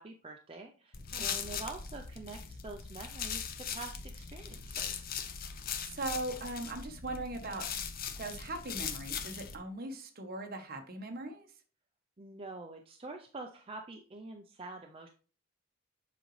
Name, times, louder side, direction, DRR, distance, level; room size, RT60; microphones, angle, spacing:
voice 1, 0.0-5.1 12.2-15.1, right 3 dB, 25° right, 2 dB, 0.5 m, -46 dB
sound 1, 0.9-9.6, left 7 dB, 45° left, 0.7 m, -40 dB
voice 2, 1.1-1.6 5.8-7.7 8.2-11.5, right 2 dB, 45° right, 5 dB, 1.1 m, -40 dB
7.5 x 5.1 x 3.2 m, 0.40 s
head